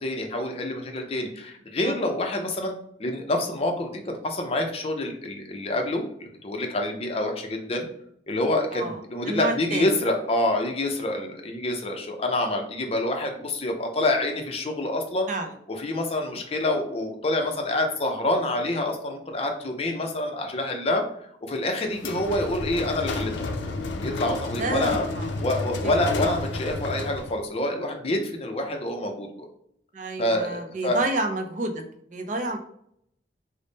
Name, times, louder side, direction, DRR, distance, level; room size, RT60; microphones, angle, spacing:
voice 1, 0.0-2.7 3.0-7.9 8.3-15.3 15.8-21.0 21.4-23.3 24.0-25.1 25.4-29.5 30.2-31.0, left 1 dB, 35° left, 3 dB, 0.5 m, -27 dB
voice 2, 9.3-10.0 15.3-15.5 21.9-22.0 24.6-25.3 25.8-25.9 26.2-26.4 29.9-31.8 32.1-32.6, right 2 dB, 45° right, 4 dB, 0.5 m, -29 dB
sound 1, 21.9-27.4, left 3 dB, 90° left, 0.4 m, -31 dB
3.4 x 2.0 x 3.9 m, 0.69 s
head